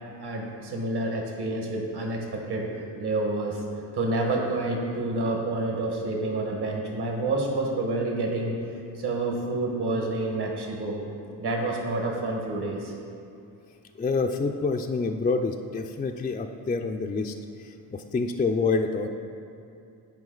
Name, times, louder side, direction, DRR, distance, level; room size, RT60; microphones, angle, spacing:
voice 1, 0.2-3.6 3.9-8.6 8.9-11.0 11.4-12.9, right 2 dB, 60° right, 0 dB, 1.4 m, -28 dB
voice 2, 14.0-19.1, left 4 dB, 20° left, 4 dB, 0.3 m, -27 dB
9.3 x 4.8 x 3.9 m, 2.6 s
supercardioid pair, 55°, 45 cm